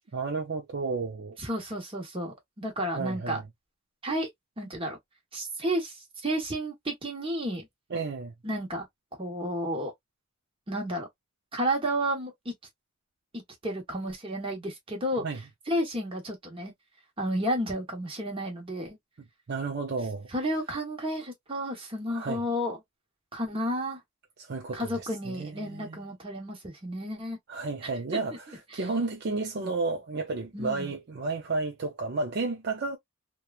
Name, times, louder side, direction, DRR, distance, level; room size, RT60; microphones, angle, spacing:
voice 1, 0.1-1.4 2.9-3.5 7.9-8.3 15.2-15.4 19.5-20.3 22.1-22.4 24.4-26.0 27.5-33.0, right 3 dB, 55° right, 0.5 m, -32 dB
voice 2, 1.4-3.4 4.0-4.3 4.6-5.0 5.3-7.7 8.4-8.9 9.2-9.9 10.7-11.1 11.5-12.5 13.3-15.2 15.7-16.7 17.2-19.0 20.3-22.8 23.3-24.0 24.7-27.4 28.7-28.8 29.6-29.7 30.5-30.9, equal, 25° right, 1.0 m, -32 dB
3.0 x 2.3 x 2.3 m
head